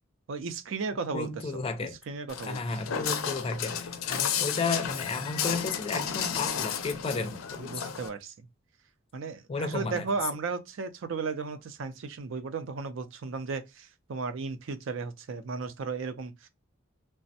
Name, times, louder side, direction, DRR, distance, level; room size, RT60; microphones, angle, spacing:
voice 1, 0.3-1.3 2.1-2.6 7.6-8.3 9.1-16.5, right 4 dB, 70° right, 0.4 m, -35 dB
voice 2, 1.1-2.0 2.4-7.9 9.5-10.0, left 3 dB, 30° left, 0.4 m, -33 dB
Walk footsteps, 2.3-8.1, left 8 dB, 85° left, 0.5 m, -32 dB
3.3 x 2.0 x 2.6 m
head